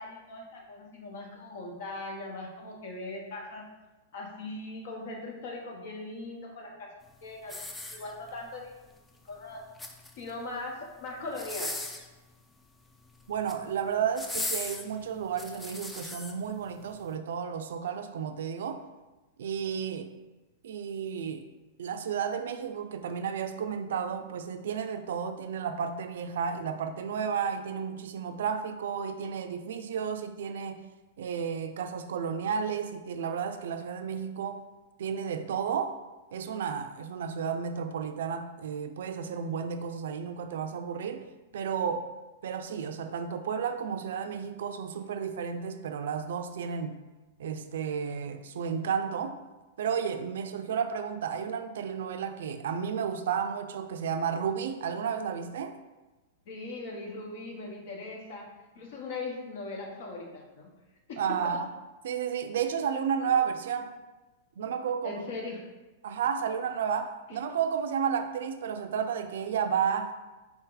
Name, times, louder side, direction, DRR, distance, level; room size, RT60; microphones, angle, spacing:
voice 1, 0.0-3.7 4.1-6.9 7.2-7.6 7.9-8.7 9.2-9.6 10.2-11.8 56.5-60.7 61.1-61.4 65.0-65.6, left 2 dB, 60° left, 0 dB, 1.0 m, -40 dB
sound 1, 7.4-8.5 9.6-10.3 11.3-12.1 13.2-13.6 14.2-16.3 16.9-17.0, left 2 dB, 10° left, 0.4 m, -37 dB
voice 2, 13.3-18.8 19.4-20.1 20.6-21.5 21.8-30.9 31.2-34.6 35.0-36.0 36.3-41.3 41.5-42.1 42.4-47.0 47.4-49.4 49.8-55.8 61.2-61.7 62.0-63.9 64.6-65.2 66.0-70.1, right 7 dB, 80° right, 8 dB, 0.4 m, -32 dB
4.2 x 2.8 x 3.8 m, 1.1 s
supercardioid pair, 145°, 0 cm